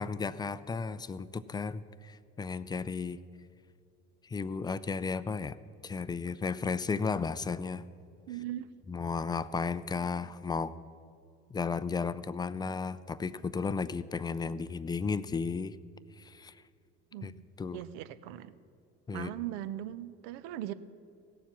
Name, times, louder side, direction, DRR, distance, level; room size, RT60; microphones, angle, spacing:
voice 1, 0.0-3.2 4.2-5.6 5.8-7.8 8.9-10.8 11.5-15.8 16.2-16.6 17.2-17.8 19.1-19.3, left 5 dB, 15° left, 16 dB, 0.3 m, -34 dB
voice 2, 8.3-8.7 17.1-17.4 17.7-18.5 19.1-20.7, right 13 dB, 70° right, 15 dB, 0.7 m, -39 dB
17.0 x 7.2 x 5.9 m, 2.4 s
hypercardioid pair, 70°, 36 cm